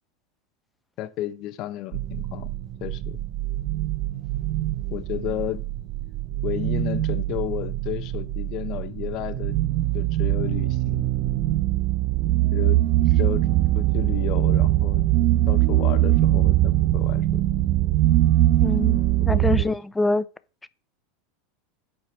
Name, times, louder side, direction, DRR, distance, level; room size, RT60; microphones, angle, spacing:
voice 1, 1.0-2.5 2.8-3.2 4.9-5.6 6.4-9.6 9.9-11.1 12.5-12.8 13.1-13.5 13.7-15.0 15.5-17.5 19.3-19.8, left 13 dB, 50° left, 0.8 m, -32 dB
sound 1, 1.9-19.6, right 15 dB, 55° right, 0.6 m, -22 dB
voice 2, 18.6-20.3, left 3 dB, 10° left, 0.5 m, -25 dB
8.4 x 4.6 x 4.5 m
hypercardioid pair, 100°, 0 cm